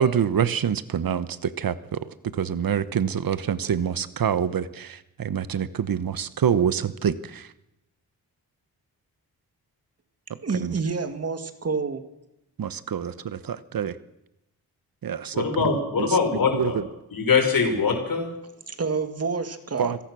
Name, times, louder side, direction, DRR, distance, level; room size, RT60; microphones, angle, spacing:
voice 1, 0.0-2.0 2.3-7.5 10.6-10.7 12.6-14.0 15.0-15.4 16.5-16.7 19.8-20.0, right 8 dB, 60° right, 1.1 m, -26 dB
voice 2, 10.4-12.0 18.7-19.9, right 4 dB, 40° right, 2.2 m, -28 dB
voice 3, 15.3-16.8 17.1-18.3, left 5 dB, 60° left, 5.2 m, -23 dB
25.5 x 17.5 x 6.3 m
wide cardioid pair, 130°, 38 cm